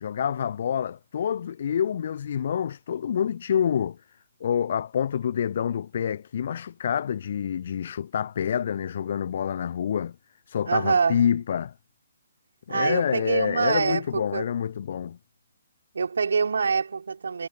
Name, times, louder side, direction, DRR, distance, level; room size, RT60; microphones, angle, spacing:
voice 1, 0.0-4.0 4.4-10.1 10.5-11.7 12.7-15.2, left 8 dB, 45° left, 0.7 m, -27 dB
voice 2, 10.7-11.2 12.7-14.5 15.9-17.5, right 5 dB, 60° right, 5.5 m, -25 dB
figure-of-eight pair, 130°, 0 cm